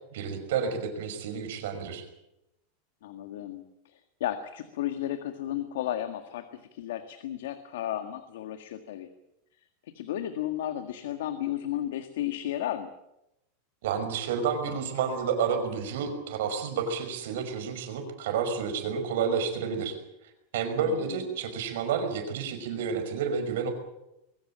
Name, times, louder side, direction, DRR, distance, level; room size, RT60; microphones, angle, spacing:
voice 1, 0.1-2.0 13.8-20.0 20.5-23.7, right 6 dB, 70° right, 7 dB, 5.5 m, -30 dB
voice 2, 3.0-9.1 9.9-12.9 20.8-21.2, left 12 dB, 75° left, 8 dB, 1.8 m, -34 dB
22.5 x 16.5 x 8.9 m, 0.88 s
supercardioid pair, 165°, 0 cm